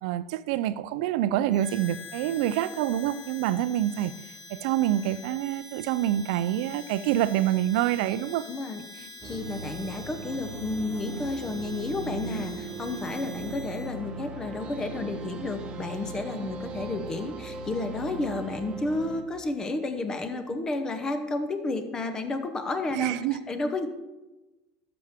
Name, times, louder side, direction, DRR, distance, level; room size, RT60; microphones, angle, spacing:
voice 1, 0.0-4.1 4.5-8.4 22.9-23.4, right 12 dB, 75° right, 14 dB, 0.5 m, -26 dB
Harmonica, 1.5-13.9, left 2 dB, 55° left, 3.2 m, -46 dB
voice 2, 8.5-23.2 23.5-23.9, left 2 dB, 15° left, 8 dB, 0.8 m, -31 dB
sound 1, 9.2-19.2, right 3 dB, 30° right, 0.9 m, -38 dB
12.5 x 6.9 x 3.6 m, 1.1 s
cardioid pair, 160°, 4 cm